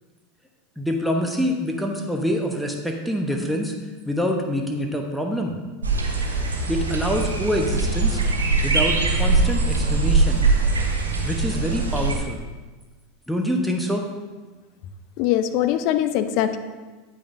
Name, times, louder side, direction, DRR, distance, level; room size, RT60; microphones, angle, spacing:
voice 1, 0.8-3.7 4.0-5.5 6.7-8.2 8.6-10.5 11.2-12.4 13.3-14.0, equal, ahead, 1 dB, 1.0 m, -25 dB
sound 1, 5.8-12.2, right 3 dB, 85° right, 1.1 m, -22 dB
voice 2, 15.2-16.6, left 11 dB, 55° left, 10 dB, 0.6 m, -22 dB
9.2 x 8.5 x 2.7 m, 1.3 s
hypercardioid pair, 85°, 0 cm